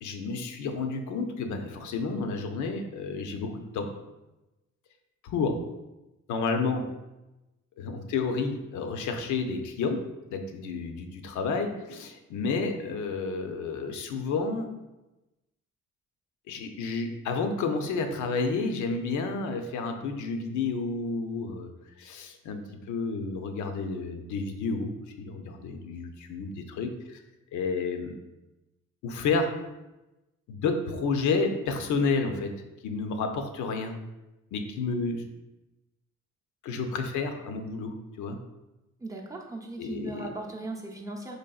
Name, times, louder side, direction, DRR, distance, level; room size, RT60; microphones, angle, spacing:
voice 1, 0.0-3.9 5.2-5.6 6.3-6.8 7.8-10.0 10.3-14.7 16.5-21.7 22.0-22.6 22.9-27.2 27.5-28.1 29.0-29.5 30.5-32.5 32.8-33.9 34.5-35.2 36.6-38.4 39.8-40.3, left 4 dB, 80° left, 5 dB, 0.5 m, -30 dB
voice 2, 39.0-41.4, right 2 dB, 10° right, -1 dB, 0.5 m, -38 dB
3.9 x 3.2 x 2.3 m, 1.0 s
cardioid pair, 90°, 30 cm